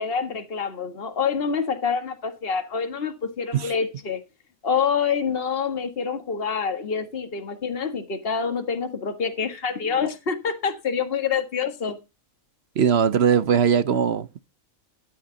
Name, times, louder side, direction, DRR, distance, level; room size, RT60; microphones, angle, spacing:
voice 1, 0.0-4.2 4.6-12.0, left 6 dB, 45° left, 1.8 m, -26 dB
voice 2, 12.8-14.4, right 7 dB, 55° right, 0.9 m, -20 dB
13.0 x 9.2 x 3.9 m
omnidirectional pair, 1.4 m